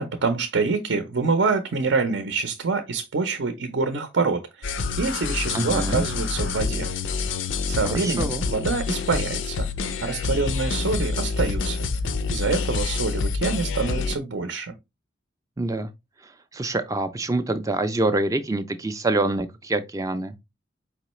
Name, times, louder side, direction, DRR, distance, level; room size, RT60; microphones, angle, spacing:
voice 1, 0.0-6.9 7.7-9.7 10.0-11.8 12.3-14.7, right 4 dB, 70° right, 0.6 m, -26 dB
sound 1, 4.6-14.2, left 4 dB, 75° left, 0.5 m, -27 dB
voice 2, 5.5-6.0 7.8-8.4 15.6-15.9 16.5-20.3, right 2 dB, 15° right, 0.3 m, -25 dB
4.8 x 3.0 x 3.0 m
head